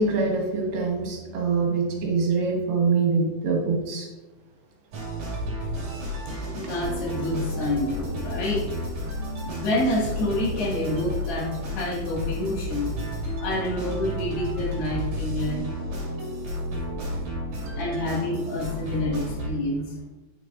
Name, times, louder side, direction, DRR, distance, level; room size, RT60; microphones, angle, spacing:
voice 1, 0.0-4.1, right 4 dB, 75° right, 0 dB, 3.2 m, -24 dB
sound 1, 4.9-19.5, equal, 50° right, 3.6 m, -32 dB
voice 2, 6.4-8.7 9.4-12.9 13.4-15.6 17.8-20.0, left 1 dB, 80° left, -4 dB, 4.1 m, -28 dB
9.3 x 7.5 x 2.6 m, 1.1 s
omnidirectional pair, 4.6 m